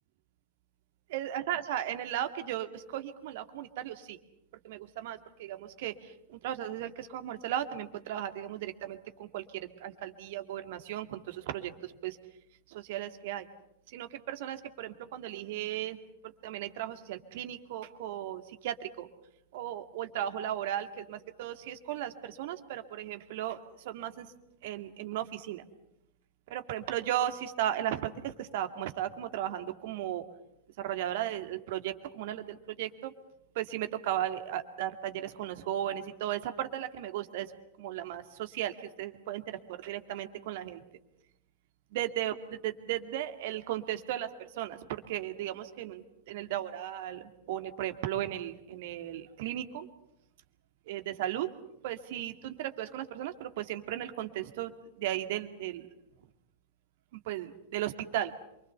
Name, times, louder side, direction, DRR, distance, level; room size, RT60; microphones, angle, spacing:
voice 1, 1.1-4.2 4.6-12.2 12.7-13.5 13.9-16.0 16.2-19.1 19.5-24.3 24.6-25.6 26.5-30.2 30.8-33.1 33.5-37.5 37.8-40.8 41.9-49.9 50.9-51.5 51.8-55.9 57.1-58.3, right 12 dB, 50° right, 9 dB, 2.2 m, -36 dB
28.0 x 24.5 x 6.9 m, 0.82 s
figure-of-eight pair, 90°, 0 cm